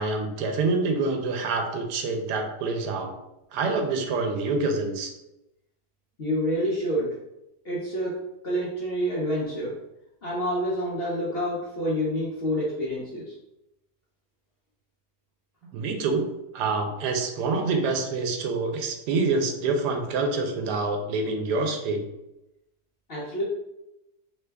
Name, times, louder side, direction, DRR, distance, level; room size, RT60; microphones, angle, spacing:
voice 1, 0.0-3.1 3.5-5.1 15.7-16.3 16.5-22.0, right 3 dB, 85° right, 4 dB, 1.1 m, -26 dB
voice 2, 6.2-7.1 7.6-8.2 8.4-9.8 10.2-13.3 23.1-23.4, equal, 60° left, -5 dB, 0.6 m, -28 dB
3.1 x 2.2 x 3.3 m, 0.90 s
omnidirectional pair, 1.7 m